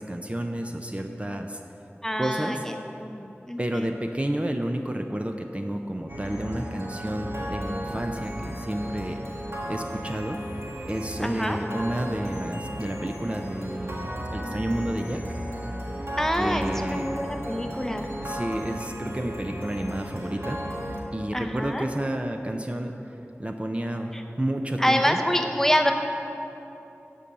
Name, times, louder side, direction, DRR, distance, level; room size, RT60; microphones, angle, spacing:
voice 1, 0.0-1.6 2.2-2.6 3.6-9.2 9.7-10.4 10.8-15.2 16.4-17.1 18.2-20.6 21.1-25.2, right 1 dB, 25° right, 4 dB, 0.6 m, -30 dB
voice 2, 2.0-2.7 3.0-3.9 11.2-11.6 16.2-18.1 21.3-21.9 24.1-24.2 24.8-25.9, equal, 10° left, 5 dB, 0.8 m, -26 dB
sound 1, 6.1-21.0, equal, 70° right, 1.6 m, -35 dB
11.5 x 5.4 x 7.4 m, 3.0 s
wide cardioid pair, 40°, 5 cm